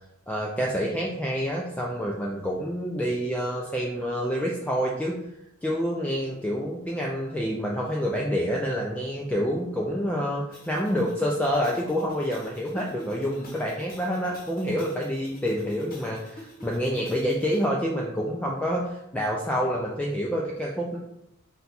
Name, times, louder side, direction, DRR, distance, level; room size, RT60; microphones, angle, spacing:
voice 1, 0.3-5.2 5.6-21.0, equal, 5° left, -3 dB, 0.3 m, -28 dB
sound 1, 10.5-17.7, left 1 dB, 45° left, 0.9 m, -48 dB
4.1 x 2.3 x 4.0 m, 0.83 s
head